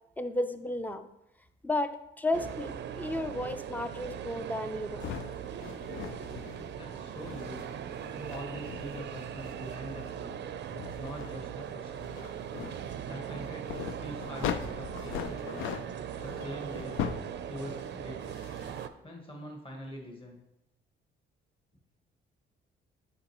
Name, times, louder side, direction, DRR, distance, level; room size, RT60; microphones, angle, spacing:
voice 1, 0.2-1.1 1.6-5.1, left 1 dB, 10° left, 10 dB, 0.4 m, -33 dB
sound 1, 2.3-18.9, right 9 dB, 60° right, 0.4 m, -40 dB
sound 2, 5.0-18.9, left 8 dB, 90° left, 0.4 m, -41 dB
voice 2, 6.7-7.6 8.2-10.4 11.0-12.1 13.0-15.5 16.2-17.0 17.5-18.3 19.0-20.4, left 1 dB, 25° left, 0 dB, 1.5 m, -44 dB
6.5 x 5.3 x 3.0 m, 0.82 s
cardioid pair, 90°, 20 cm